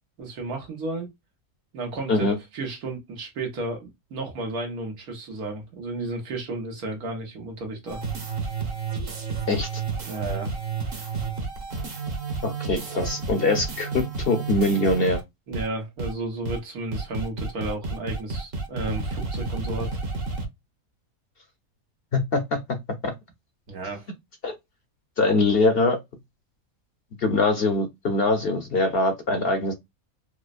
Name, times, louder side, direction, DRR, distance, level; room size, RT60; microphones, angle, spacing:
voice 1, 0.2-1.1 1.7-8.0 10.0-10.5 15.5-19.9 23.7-24.1, right 2 dB, 85° right, 1.6 m, -33 dB
sound 1, 7.9-15.2 15.5-15.7 16.0-16.1 16.4-16.6 16.9-20.4, right 4 dB, 45° right, 1.2 m, -31 dB
voice 2, 9.5-9.8 12.4-15.2 22.1-22.6 23.0-23.1 24.4-24.5 25.2-26.0 27.2-29.7, left 2 dB, 50° left, 0.8 m, -23 dB
4.7 x 2.1 x 2.4 m
omnidirectional pair, 1.5 m